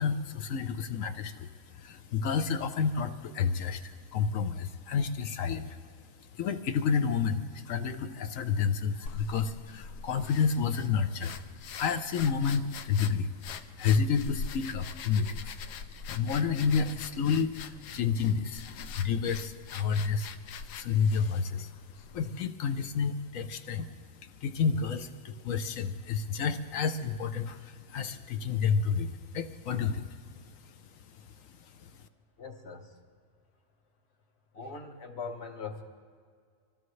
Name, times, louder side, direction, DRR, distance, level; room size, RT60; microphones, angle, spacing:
voice 1, 0.0-5.8 6.3-15.7 16.1-20.3 20.6-21.7 22.1-30.2 30.5-30.7 31.1-31.3 31.8-31.9, left 6 dB, 60° left, 8 dB, 1.0 m, -30 dB
sound 1, 9.1-22.5, left 5 dB, 85° left, 1.3 m, -44 dB
voice 2, 32.4-32.9 34.5-35.8, left 4 dB, 45° left, 4 dB, 1.4 m, -41 dB
25.0 x 15.5 x 3.2 m, 2.1 s
omnidirectional pair, 1.7 m